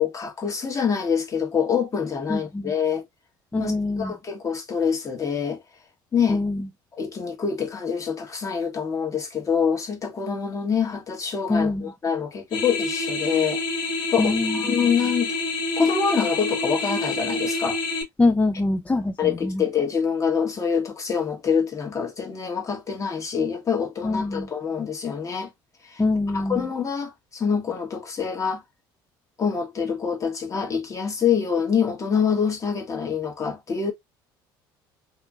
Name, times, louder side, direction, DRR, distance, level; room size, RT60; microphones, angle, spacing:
voice 1, 0.0-3.0 3.6-5.6 6.1-6.4 7.0-13.6 14.1-15.4 15.8-17.8 19.2-25.5 25.8-26.0 26.3-28.6 29.4-33.9, left 6 dB, 30° left, 1.2 m, -25 dB
voice 2, 2.3-2.7 3.5-4.1 6.3-6.7 11.5-11.9 14.2-14.7 18.2-19.6 24.0-24.5 26.0-26.7, left 2 dB, 15° left, 0.3 m, -24 dB
sound 1, 12.5-18.0, left 2 dB, 55° left, 1.0 m, -27 dB
2.8 x 2.6 x 2.3 m
supercardioid pair, 85°, 11 cm